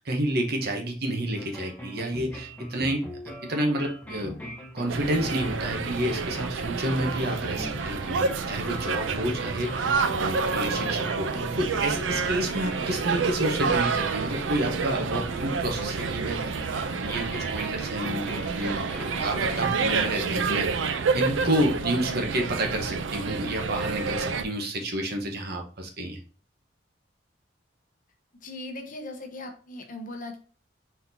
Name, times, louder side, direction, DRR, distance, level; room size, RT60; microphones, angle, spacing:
voice 1, 0.0-4.4 4.7-20.7 21.1-26.2, right 1 dB, 55° right, 2 dB, 1.0 m, -30 dB
sound 1, 1.4-19.7, equal, 10° left, 1.0 m, -41 dB
sound 2, 4.9-24.4, right 5 dB, 90° right, 0.5 m, -29 dB
voice 2, 28.4-30.4, left 2 dB, 45° left, 4 dB, 0.9 m, -38 dB
4.3 x 4.0 x 2.7 m, 0.39 s
head